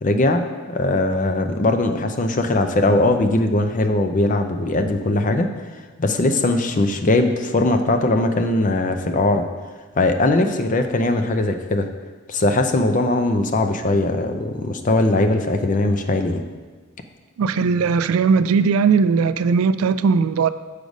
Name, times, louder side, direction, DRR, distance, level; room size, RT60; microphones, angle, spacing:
voice 1, 0.0-5.5 6.0-9.5 10.0-11.9 12.3-16.4, left 2 dB, 40° left, 0.5 m, -20 dB
voice 2, 17.4-20.5, right 5 dB, 85° right, 0.3 m, -18 dB
6.4 x 5.0 x 5.2 m
head